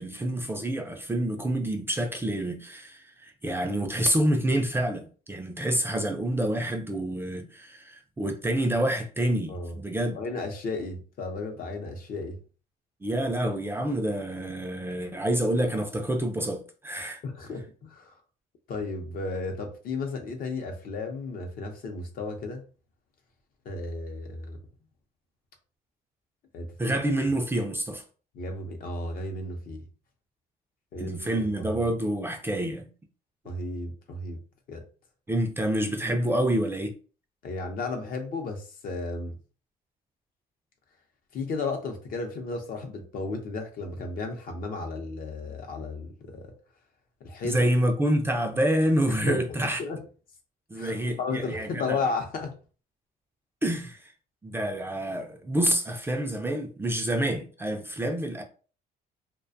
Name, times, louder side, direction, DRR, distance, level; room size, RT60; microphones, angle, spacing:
voice 1, 0.0-10.2 13.0-17.2 26.8-28.0 31.0-32.9 35.3-36.9 47.4-49.8 50.7-52.0 53.6-54.1 54.4-58.4, right 1 dB, 15° right, 0.3 m, -27 dB
voice 2, 10.1-12.4 17.2-18.1 18.7-22.7 23.6-24.6 26.5-26.7 28.3-29.9 30.9-31.8 33.4-34.4 34.7-34.8 37.4-39.4 41.3-46.5 47.2-47.7 49.1-50.0 50.7-52.5, left 3 dB, 55° left, 0.7 m, -34 dB
2.4 x 2.2 x 2.5 m
cardioid pair, 110°, 17 cm